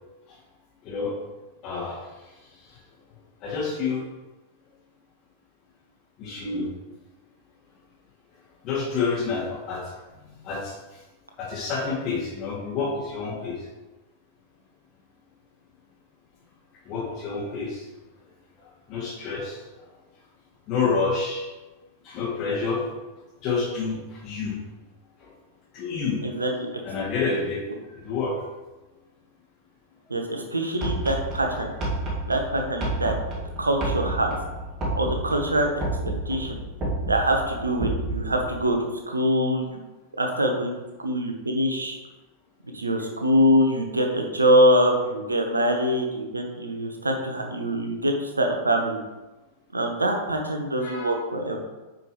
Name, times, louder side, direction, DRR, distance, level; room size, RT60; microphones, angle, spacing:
voice 1, 1.6-2.0 2.7-2.8 3.4-4.0 6.2-6.7 8.6-9.9 10.4-10.7 11.4-13.5 16.9-17.9 18.9-19.7 20.7-21.5 22.0-22.8 23.4-24.5 25.2-25.3 25.7-26.2 26.8-27.6 28.0-28.4 50.8-51.2, left 4 dB, 40° left, -8 dB, 2.4 m, -28 dB
voice 2, 26.2-26.7 30.1-31.7 32.3-33.1 33.6-34.4 35.0-35.7 36.3-36.6 37.1-38.8 39.1-39.6 40.2-40.7 41.0-42.0 42.7-49.0 49.7-51.6, equal, 80° right, 3 dB, 1.1 m, -24 dB
sound 1, 30.8-38.6, right 1 dB, 30° right, 2.0 m, -30 dB
9.1 x 5.2 x 3.1 m, 1.1 s
figure-of-eight pair, 95°, 0 cm